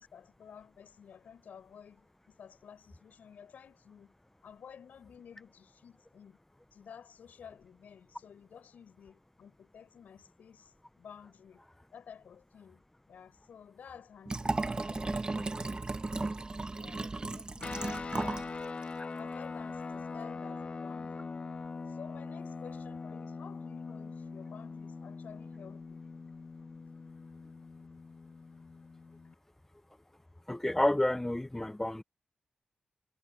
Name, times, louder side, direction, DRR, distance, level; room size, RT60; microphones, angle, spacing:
voice 1, 0.0-4.1 4.4-6.4 6.7-11.6 11.9-12.8 13.1-15.8 16.1-16.4 16.8-17.9 18.1-18.4 19.2-21.3 21.9-26.0, left 7 dB, 85° left, 7.8 m, -53 dB
Liquid, 14.3-18.5 18.8-18.9, right 3 dB, 35° right, 1.6 m, -35 dB
sound 1, 17.6-29.3, left 4 dB, 50° left, 2.7 m, -42 dB
voice 2, 30.5-32.0, left 1 dB, 15° left, 0.9 m, -29 dB
cardioid pair, 65°, 3 cm